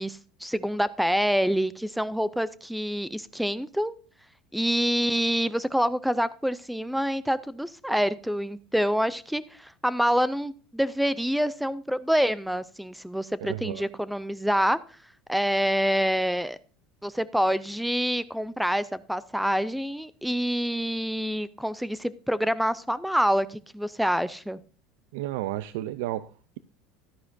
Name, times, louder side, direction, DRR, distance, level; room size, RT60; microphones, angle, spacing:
voice 1, 0.0-3.9 4.5-14.8 15.3-16.6 17.0-24.6, equal, ahead, 17 dB, 0.3 m, -26 dB
voice 2, 13.5-13.8 25.1-26.6, right 14 dB, 85° right, 15 dB, 0.4 m, -32 dB
13.0 x 9.6 x 2.5 m, 0.39 s
cardioid pair, 170°, 0 cm